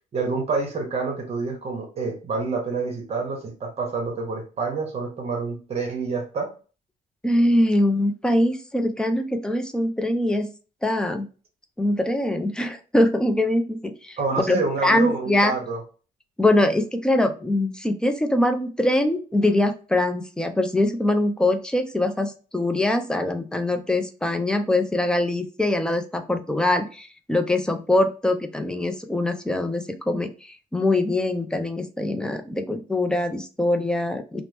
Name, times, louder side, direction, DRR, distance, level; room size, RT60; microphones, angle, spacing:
voice 1, 0.1-6.5 14.2-15.8, right 4 dB, 40° right, 1 dB, 0.9 m, -27 dB
voice 2, 7.2-10.5 10.8-11.3 11.8-14.2 14.5-15.5 16.4-34.4, left 1 dB, 5° left, 7 dB, 0.4 m, -23 dB
2.8 x 2.0 x 3.3 m, 0.36 s
cardioid pair, 135°, 16 cm